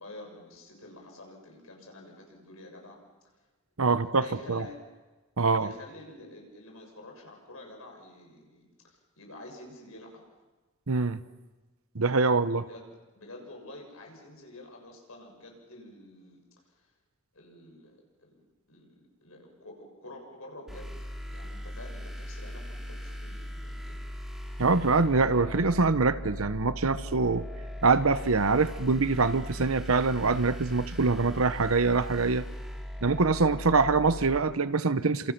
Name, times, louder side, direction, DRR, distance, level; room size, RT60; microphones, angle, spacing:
voice 1, 0.0-3.0 3.8-4.8 5.4-10.2 12.6-16.4 16.7-16.9 17.3-21.0 21.3-24.0, left 2 dB, 80° left, 6.7 m, -48 dB
voice 2, 3.8-4.7 5.4-5.7 10.9-11.2 11.9-12.7 24.6-27.5 27.8-32.5 33.0-35.3, right 4 dB, 80° right, 1.0 m, -24 dB
sound 1, 20.7-34.4, equal, ahead, 3.0 m, -39 dB
30.0 x 27.0 x 6.1 m
head